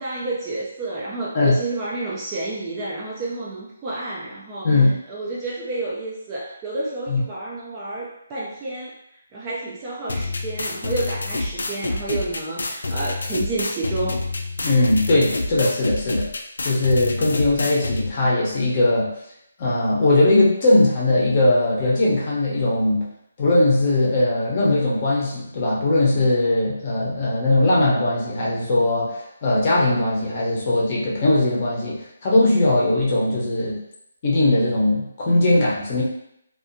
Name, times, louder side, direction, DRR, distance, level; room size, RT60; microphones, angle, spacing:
voice 1, 0.0-4.7 5.1-8.9 9.3-14.2, right 2 dB, 15° right, -6 dB, 0.3 m, -30 dB
voice 2, 4.6-5.0 7.1-7.2 14.6-16.3 16.6-19.1 19.6-23.0 23.4-33.8 34.2-36.0, left 2 dB, 30° left, -5 dB, 0.6 m, -19 dB
sound 1, 10.1-18.1, left 2 dB, 80° left, 0.3 m, -28 dB
2.6 x 2.3 x 2.5 m, 0.78 s
hypercardioid pair, 170°, 0 cm